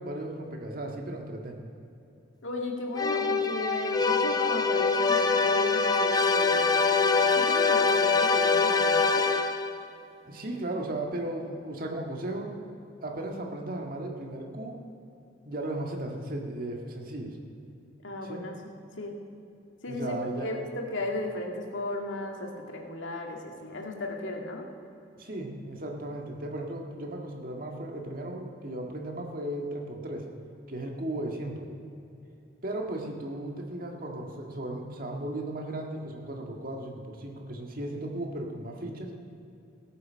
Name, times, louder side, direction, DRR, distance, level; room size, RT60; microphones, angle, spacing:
voice 1, 0.0-1.6 10.2-12.6 13.0-14.8 15.4-17.4 18.2-18.4 19.9-20.6 25.2-30.3 30.7-31.7 32.6-39.1, right 1 dB, 50° right, 2 dB, 1.8 m, -36 dB
voice 2, 2.4-9.3 18.0-18.6 19.0-19.2 19.8-24.7, left 2 dB, 85° left, 2 dB, 1.9 m, -35 dB
sound 1, 3.0-9.8, left 4 dB, 20° left, 0.6 m, -24 dB
16.5 x 9.2 x 6.3 m, 2.7 s
head